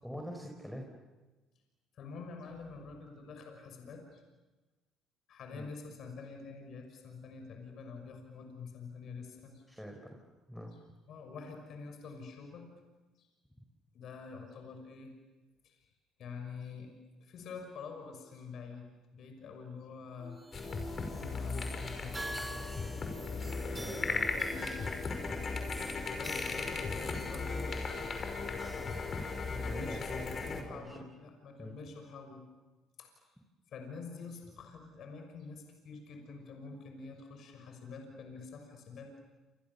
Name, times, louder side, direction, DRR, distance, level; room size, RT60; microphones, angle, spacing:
voice 1, 0.0-0.9 5.5-5.7 9.7-10.2 10.5-10.7 23.7-24.3 25.3-25.4 29.6-30.9 31.6-31.8, equal, ahead, 2 dB, 5.2 m, -44 dB
voice 2, 1.9-4.2 5.3-9.6 11.1-12.7 13.2-13.3 13.9-15.1 15.6-15.9 16.2-16.9 17.2-18.9 19.1-20.4 21.1-22.6 23.2-23.3 24.2-24.8 26.1-28.0 29.5-32.4 33.0-33.3 33.7-39.1, left 4 dB, 60° left, 4 dB, 6.1 m, -47 dB
sound 1, 20.2-29.8, right 1 dB, 15° right, 3.4 m, -48 dB
sound 2, 20.5-30.6, left 4 dB, 40° left, 5.6 m, -37 dB
29.0 x 28.0 x 7.1 m, 1.2 s
hypercardioid pair, 65°, 0 cm